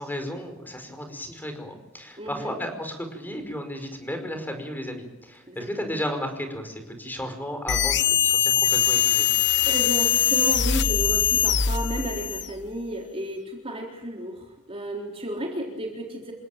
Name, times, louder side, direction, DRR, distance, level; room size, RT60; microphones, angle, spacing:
voice 1, 0.0-9.3, equal, 10° left, 6 dB, 5.0 m, -34 dB
voice 2, 2.2-2.5 5.5-5.9 9.7-16.3, equal, 25° right, 0 dB, 3.9 m, -33 dB
sound 1, 7.7-12.6, left 9 dB, 55° left, 1.0 m, -22 dB
28.5 x 17.0 x 9.1 m, 1.0 s
head